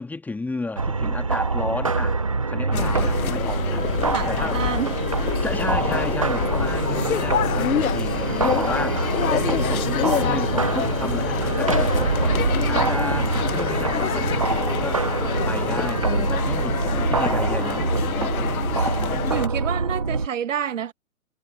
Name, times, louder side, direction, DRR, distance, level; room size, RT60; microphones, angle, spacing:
voice 1, 0.0-2.2 2.5-3.8 4.3-4.6 5.4-12.4 12.7-15.0 15.4-17.8, left 3 dB, 5° left, 1.5 m, -33 dB
sound 1, 0.8-20.3, right 4 dB, 25° right, 0.3 m, -24 dB
sound 2, 2.7-19.5, left 10 dB, 80° left, 0.6 m, -27 dB
voice 2, 4.0-4.9 5.3-5.4 19.3-20.9, right 9 dB, 60° right, 1.0 m, -28 dB
hypercardioid pair, 140°, 43 cm